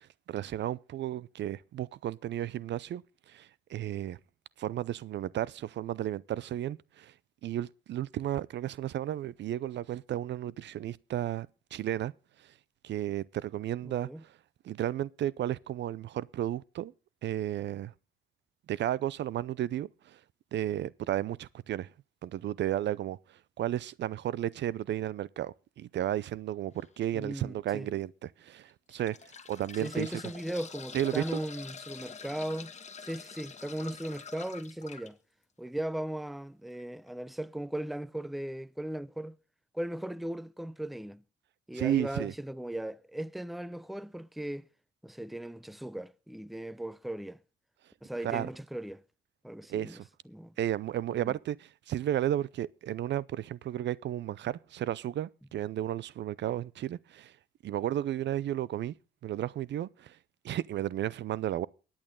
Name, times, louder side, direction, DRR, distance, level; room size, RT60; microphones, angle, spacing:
voice 1, 0.0-3.0 3.3-4.2 4.6-7.1 7.4-12.1 12.8-14.1 14.6-16.9 17.2-17.9 18.7-20.2 20.5-21.9 22.2-23.2 23.6-29.2 29.5-30.1 30.9-31.4 41.7-42.3 48.2-48.5 49.7-50.0 50.6-57.3 57.6-58.9 59.2-60.2 60.4-61.7, right 12 dB, 65° right, 0.5 m, -33 dB
voice 2, 13.8-14.2 27.1-27.9 29.8-32.7 33.0-35.2 35.6-39.4 39.7-41.2 41.7-44.7 45.0-47.4 48.0-49.0 49.4-50.6 51.1-51.4, right 1 dB, ahead, 0.6 m, -37 dB
sound 1, 26.8-27.0 27.7-27.8 28.7-35.1 36.7-36.8 37.1-37.2, left 6 dB, 35° left, 1.4 m, -46 dB
23.0 x 8.8 x 3.7 m
cardioid pair, 90°, 20 cm